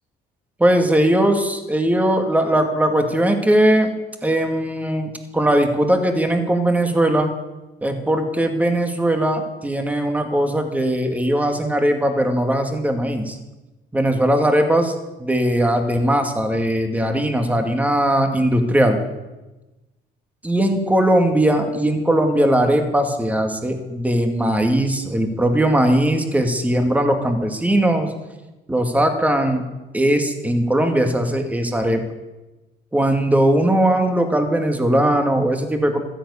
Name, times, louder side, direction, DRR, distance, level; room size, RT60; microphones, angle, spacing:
voice 1, 0.6-3.9 4.2-7.3 7.8-13.4 13.9-19.0 20.4-28.1 28.7-29.6 29.9-32.0 32.9-36.0, right 1 dB, 10° right, 5 dB, 2.2 m, -19 dB
13.5 x 10.0 x 8.5 m, 1.1 s
cardioid pair, 110°, 17 cm